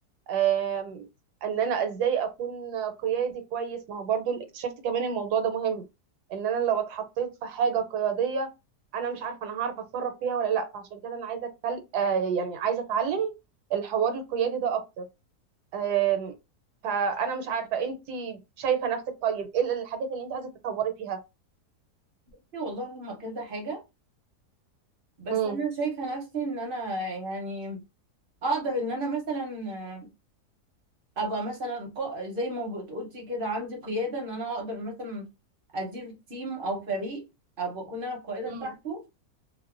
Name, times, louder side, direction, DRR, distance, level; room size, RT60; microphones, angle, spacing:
voice 1, 0.3-1.1 1.4-5.8 6.3-8.5 8.9-13.3 13.7-15.0 15.7-16.3 16.8-21.2 25.3-25.6 38.4-38.7, right 7 dB, 80° right, 1.1 m, -28 dB
voice 2, 22.5-23.8 25.2-27.8 28.4-30.1 31.2-35.3 35.7-37.3 37.6-39.1, right 2 dB, 50° right, 0.7 m, -32 dB
2.7 x 2.0 x 2.4 m
omnidirectional pair, 1.7 m